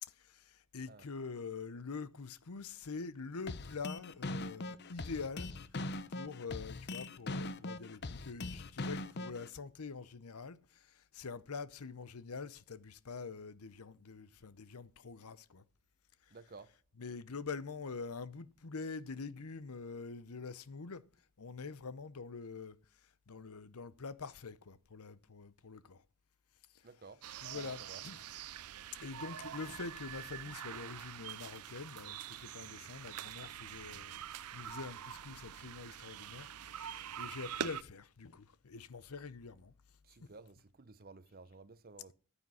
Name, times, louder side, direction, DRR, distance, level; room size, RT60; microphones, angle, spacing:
voice 1, 0.0-5.5 5.8-15.6 17.0-21.0 21.4-22.8 23.3-26.0 27.4-28.2 29.0-39.7 40.2-40.3, left 4 dB, 80° left, 0.8 m, -45 dB
sound 1, 3.5-9.5, left 2 dB, 50° left, 0.7 m, -41 dB
voice 2, 16.3-16.7 26.8-27.2 27.5-28.0 40.0-42.1, right 4 dB, 40° right, 0.7 m, -54 dB
sound 2, 27.2-37.8, right 9 dB, 90° right, 0.6 m, -45 dB
10.0 x 9.6 x 6.4 m
head